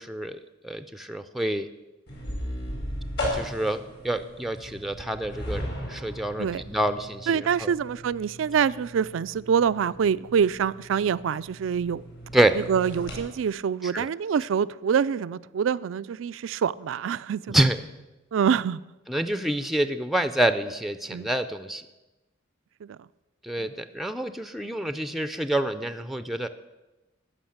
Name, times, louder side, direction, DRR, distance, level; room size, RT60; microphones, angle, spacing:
voice 1, 0.0-1.7 3.3-7.7 12.3-12.5 13.8-14.1 17.5-17.8 19.1-21.8 23.4-26.5, right 1 dB, ahead, 0.4 m, -27 dB
sound 1, 2.1-13.2, equal, 60° left, 4.8 m, -37 dB
voice 2, 7.3-12.0 12.7-17.5 18.3-18.8 21.1-21.3 22.8-22.9 23.6-23.7, right 7 dB, 90° right, 0.4 m, -25 dB
13.5 x 5.9 x 8.6 m
head